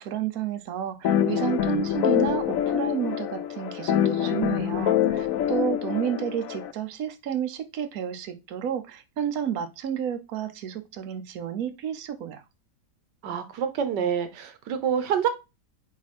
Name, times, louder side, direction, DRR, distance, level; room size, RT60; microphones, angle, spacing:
voice 1, 0.0-12.4, right 9 dB, 65° right, 1.2 m, -31 dB
sound 1, 1.0-6.7, left 10 dB, 65° left, 0.9 m, -25 dB
voice 2, 13.2-15.3, right 8 dB, 85° right, 1.5 m, -27 dB
4.9 x 4.6 x 4.2 m
omnidirectional pair, 1.8 m